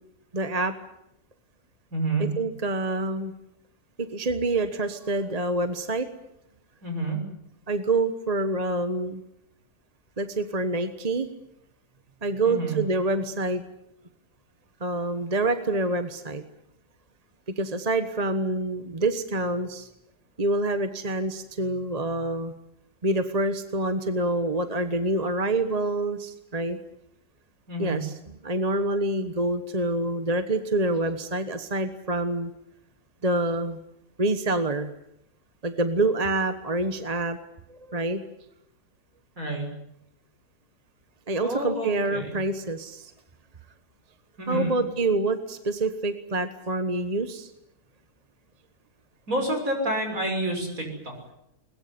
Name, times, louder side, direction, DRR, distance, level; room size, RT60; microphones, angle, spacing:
voice 1, 0.3-0.7 2.2-3.3 4.0-6.1 7.7-9.2 10.2-11.3 12.2-13.6 14.8-16.4 17.6-19.9 20.4-22.5 23.0-26.8 27.8-28.1 28.4-32.5 33.2-33.8 34.2-34.9 35.6-37.4 37.7-38.2 41.3-43.1 44.5-47.5, right 2 dB, 25° right, 9 dB, 1.2 m, -26 dB
voice 2, 1.9-2.3 6.8-7.2 12.4-12.8 27.7-28.0 39.4-39.7 41.4-42.3 44.4-44.8 49.3-51.1, right 1 dB, 55° right, 3 dB, 6.9 m, -28 dB
21.5 x 21.0 x 9.6 m, 0.80 s
omnidirectional pair, 1.7 m